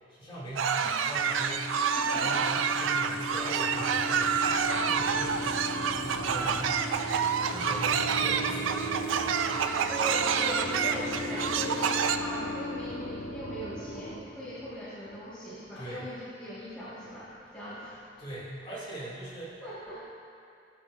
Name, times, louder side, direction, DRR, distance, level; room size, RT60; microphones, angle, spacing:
voice 1, 0.1-1.8 2.1-5.4 5.8-6.6 7.5-9.4 15.7-16.1 18.2-19.6, right 1 dB, 25° left, -8 dB, 2.1 m, -41 dB
sound 1, 0.6-12.2, right 6 dB, 85° right, 0.4 m, -28 dB
sound 2, 1.1-14.7, left 1 dB, 40° left, 1.3 m, -37 dB
voice 2, 6.2-6.5 9.9-18.1 18.6-18.8 19.6-20.0, equal, 5° left, -13 dB, 1.4 m, -40 dB
14.5 x 6.6 x 2.4 m, 2.6 s
head